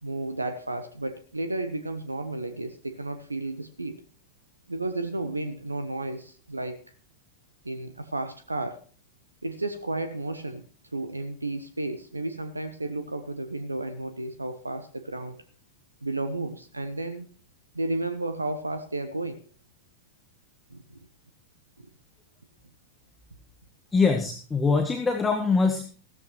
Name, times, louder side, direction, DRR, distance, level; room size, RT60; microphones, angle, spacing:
voice 1, 0.0-4.0 4.7-6.8 7.6-8.8 9.4-10.6 10.9-15.4 16.0-17.3 17.7-19.4 20.7-21.0 21.8-21.9, right 2 dB, 80° right, 10 dB, 0.9 m, -32 dB
voice 2, 23.9-25.8, left 4 dB, 15° left, 5 dB, 1.4 m, -23 dB
16.0 x 13.0 x 3.1 m, 0.41 s
figure-of-eight pair, 90°, 0 cm